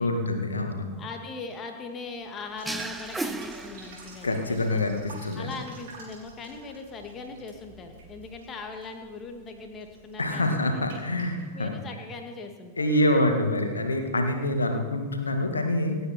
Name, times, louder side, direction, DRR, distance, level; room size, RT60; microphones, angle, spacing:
voice 1, 0.0-1.0 4.2-5.5 10.2-11.8 12.8-16.1, left 1 dB, 75° left, 5 dB, 2.1 m, -26 dB
voice 2, 0.9-4.8 5.4-10.9 11.5-12.9, left 4 dB, 25° left, 4 dB, 2.4 m, -40 dB
sound 1, 2.6-4.4, right 2 dB, 10° right, 0.7 m, -35 dB
sound 2, 2.6-11.4, right 3 dB, 55° right, 5.9 m, -49 dB
28.0 x 9.4 x 4.5 m, 1.4 s
figure-of-eight pair, 90°, 0 cm